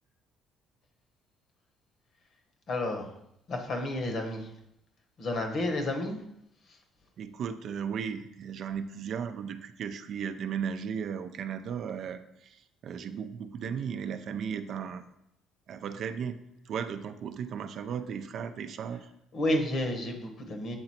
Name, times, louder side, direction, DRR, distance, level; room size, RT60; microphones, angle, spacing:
voice 1, 2.7-3.1 3.5-4.5 5.2-6.2 19.3-20.8, left 1 dB, 50° left, 4 dB, 1.1 m, -31 dB
voice 2, 7.2-15.1 15.7-19.1, right 7 dB, 55° right, 9 dB, 0.4 m, -36 dB
7.9 x 3.9 x 4.3 m, 0.79 s
cardioid pair, 120°, 0 cm